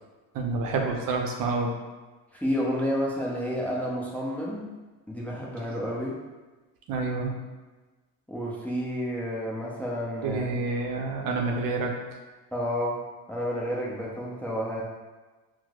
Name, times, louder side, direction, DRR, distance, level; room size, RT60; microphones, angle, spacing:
voice 1, 0.3-1.7 6.9-7.3 10.2-11.9, right 3 dB, 55° right, 1 dB, 0.6 m, -28 dB
voice 2, 2.3-4.7 5.1-6.2 8.3-10.5 12.5-13.0 13.3-14.8, equal, 5° left, -4 dB, 0.5 m, -30 dB
4.4 x 2.1 x 2.3 m, 1.2 s
supercardioid pair, 85°, 40 cm